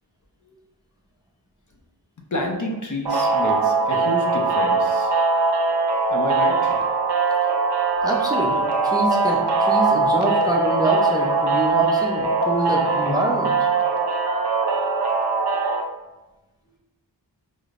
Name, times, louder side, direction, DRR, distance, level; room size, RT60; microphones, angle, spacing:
voice 1, 2.3-5.1 6.1-6.8, left 1 dB, 45° left, 1 dB, 0.6 m, -29 dB
sound 1, 3.1-15.8, right 4 dB, 65° right, 0.5 m, -21 dB
voice 2, 8.0-13.7, right 1 dB, 10° right, -1 dB, 0.5 m, -26 dB
4.8 x 2.1 x 2.4 m, 1.1 s
wide cardioid pair, 40°, 44 cm